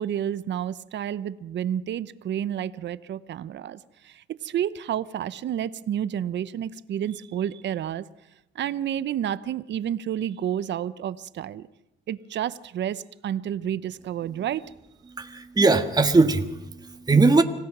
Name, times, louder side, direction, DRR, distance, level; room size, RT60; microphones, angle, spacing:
voice 1, 0.0-8.1 8.5-11.7 12.1-14.7, right 10 dB, 65° right, 16 dB, 0.8 m, -30 dB
voice 2, 15.2-17.4, right 3 dB, 20° right, 6 dB, 1.6 m, -20 dB
26.0 x 16.5 x 6.1 m, 0.89 s
cardioid pair, 90°, 20 cm